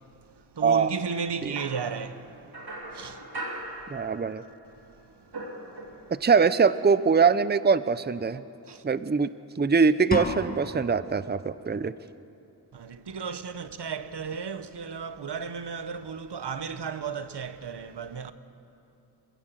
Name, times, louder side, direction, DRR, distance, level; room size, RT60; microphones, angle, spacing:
voice 1, 0.5-2.3 2.9-3.3 8.7-8.8 12.7-18.3, right 6 dB, 85° right, 1.0 m, -34 dB
sound 1, 1.6-4.6 4.8-6.3, right 1 dB, 70° right, 2.7 m, -40 dB
voice 2, 3.9-4.4 6.2-8.4 8.8-9.3 9.6-11.9, right 5 dB, 25° right, 0.6 m, -22 dB
sound 2, 10.1-11.1, left 1 dB, 20° left, 1.5 m, -31 dB
26.0 x 16.0 x 7.6 m
wide cardioid pair, 60°, 40 cm